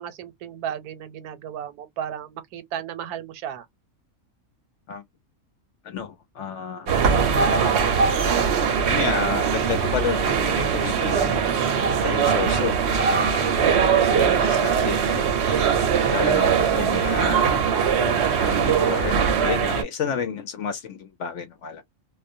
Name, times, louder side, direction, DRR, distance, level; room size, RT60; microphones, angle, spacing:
voice 1, 0.0-3.7 7.4-8.0 14.1-14.9 16.5-17.3, right 9 dB, 85° right, 1.1 m, -34 dB
voice 2, 5.8-6.9 8.2-8.3 8.9-11.4 12.0-13.7 14.1-15.3 16.1-21.8, left 6 dB, 65° left, 0.8 m, -31 dB
sound 1, 6.9-19.8, right 6 dB, 60° right, 0.8 m, -21 dB
2.4 x 2.1 x 2.6 m
omnidirectional pair, 1.6 m